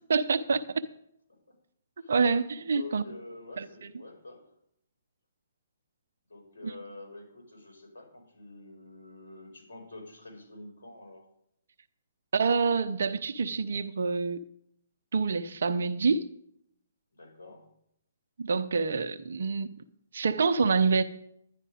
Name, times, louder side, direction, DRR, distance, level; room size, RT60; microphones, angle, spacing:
voice 1, 0.1-0.8 2.1-3.0 3.6-3.7 12.3-14.4 15.1-16.3 18.4-19.7 20.1-21.0, right 4 dB, 70° right, 0.8 m, -26 dB
voice 2, 2.7-4.5 6.3-11.2 17.1-17.7, left 2 dB, 75° left, 5.5 m, -47 dB
11.0 x 11.0 x 5.1 m
hypercardioid pair, 135°, 0 cm